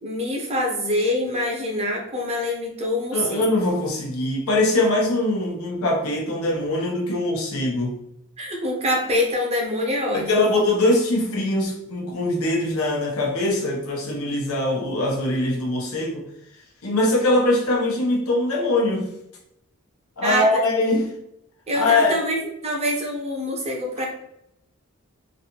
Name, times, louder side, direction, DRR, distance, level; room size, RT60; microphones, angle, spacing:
voice 1, 0.0-3.4 8.4-10.5 20.2-20.6 21.7-24.1, left 1 dB, 30° right, 0 dB, 0.7 m, -25 dB
voice 2, 3.1-8.0 10.1-16.2 16.8-19.1 20.2-21.1 21.7-22.2, left 2 dB, 85° left, -1 dB, 0.8 m, -22 dB
3.1 x 2.6 x 2.8 m, 0.80 s
head